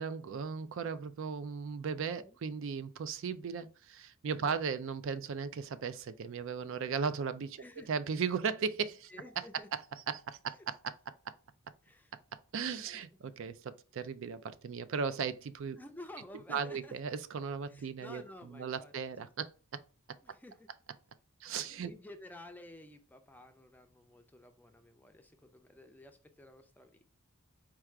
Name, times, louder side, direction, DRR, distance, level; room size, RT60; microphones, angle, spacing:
voice 1, 0.0-7.6 7.9-9.1 10.1-10.9 12.5-15.8 16.5-18.2 18.5-19.5 21.4-21.9, right 6 dB, 60° right, 0.4 m, -36 dB
voice 2, 7.6-7.9 9.1-9.7 10.5-10.6 11.8-12.1 12.8-13.0 15.8-16.9 17.7-18.9 20.2-20.7 21.6-27.0, left 1 dB, 10° left, 0.4 m, -52 dB
4.7 x 2.4 x 4.4 m
head